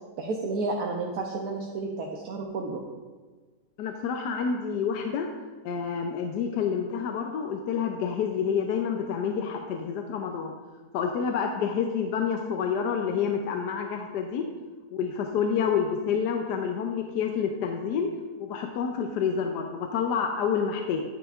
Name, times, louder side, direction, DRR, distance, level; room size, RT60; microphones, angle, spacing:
voice 1, 0.2-2.8, right 3 dB, 70° right, -1 dB, 1.2 m, -31 dB
voice 2, 3.8-5.3 5.6-10.5 10.9-14.5 14.9-18.1 18.4-21.0, left 6 dB, 80° left, 4 dB, 1.2 m, -28 dB
9.8 x 9.1 x 2.4 m, 1.4 s
omnidirectional pair, 1.8 m